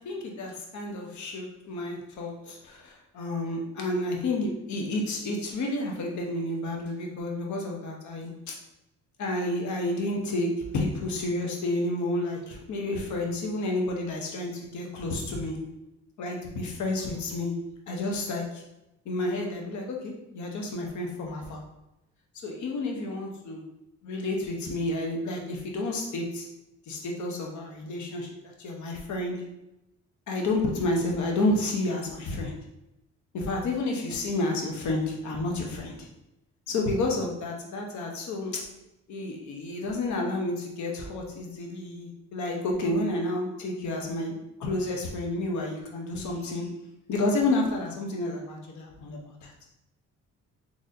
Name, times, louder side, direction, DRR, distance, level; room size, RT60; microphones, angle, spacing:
voice 1, 0.0-8.5 9.2-15.6 16.2-17.6 17.9-18.6 19.0-21.6 22.4-23.6 24.0-26.5 26.9-29.4 30.3-32.5 33.3-36.1 36.7-38.6 39.1-46.7 47.1-49.5, left 2 dB, 70° left, 1 dB, 0.9 m, -30 dB
3.9 x 3.1 x 2.7 m, 0.91 s
cardioid pair, 90°, 30 cm